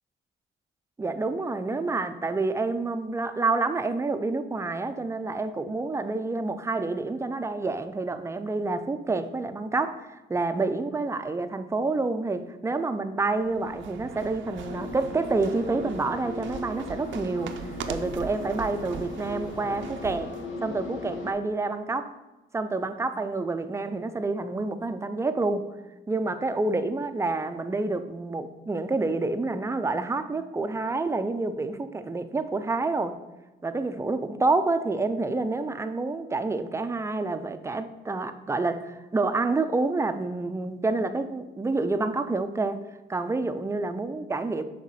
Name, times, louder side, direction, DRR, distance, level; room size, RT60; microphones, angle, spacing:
voice 1, 1.0-20.3 20.6-22.1 22.5-25.7 26.1-33.2 33.6-42.8 43.1-44.6, right 3 dB, 15° right, 9 dB, 0.4 m, -28 dB
sound 1, 13.3-20.5, right 7 dB, 75° right, 0.6 m, -41 dB
sound 2, 14.6-21.3, left 2 dB, 75° left, 1.1 m, -38 dB
6.3 x 3.6 x 5.7 m, 1.1 s
cardioid pair, 90°, 20 cm